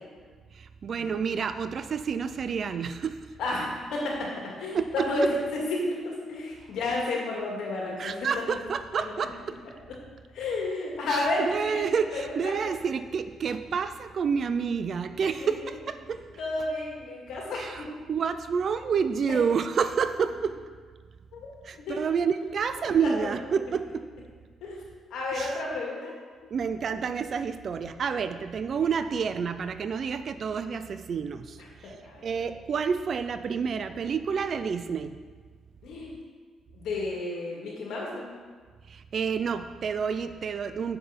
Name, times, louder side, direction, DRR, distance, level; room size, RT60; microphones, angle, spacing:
voice 1, 0.5-3.2 4.7-5.1 8.0-9.5 11.1-16.2 17.5-20.6 21.6-24.1 25.3-25.5 26.5-31.6 31.8-31.9 32.2-35.2 38.9-41.0, right 6 dB, 55° right, 10 dB, 0.4 m, -29 dB
voice 2, 3.4-8.3 9.0-9.1 10.3-11.8 12.1-12.5 15.4-15.5 16.4-17.9 19.3-19.4 21.3-21.4 21.9-22.0 23.0-23.3 24.6-24.8 25.1-26.1 31.8-32.3 35.8-36.1 36.7-38.2, left 2 dB, 80° left, -2 dB, 2.0 m, -31 dB
6.8 x 5.5 x 5.1 m, 1.5 s
cardioid pair, 90°, 0 cm